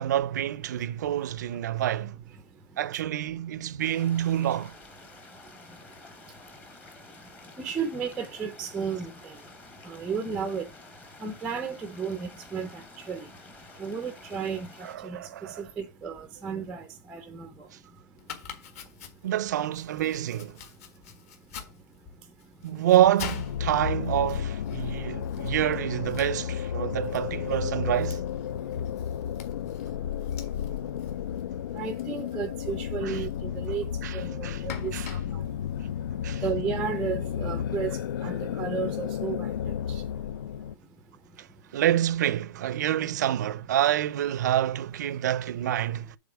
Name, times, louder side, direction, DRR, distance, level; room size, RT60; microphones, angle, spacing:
voice 1, 0.0-2.2 2.8-4.7 14.8-15.6 19.2-20.6 22.6-28.2 33.0-33.2 34.0-34.6 34.9-35.1 36.2-36.4 41.4-41.5 41.7-46.2, right 12 dB, 55° right, 0.5 m, -27 dB
sound 1, 3.8-15.0, left 3 dB, 15° left, 1.0 m, -50 dB
voice 2, 7.6-9.4 9.9-10.7 11.2-13.3 13.8-14.7 15.0-15.2 15.6-16.8 17.1-17.5 31.7-35.2 36.4-39.5 39.9-40.0, right 6 dB, 5° right, 0.5 m, -33 dB
Domestic sounds home sounds, 18.2-36.6, left 7 dB, 45° left, 1.5 m, -47 dB
sound 2, 23.3-40.7, left 9 dB, 70° left, 0.4 m, -32 dB
7.1 x 3.7 x 6.0 m
hypercardioid pair, 160°, 11 cm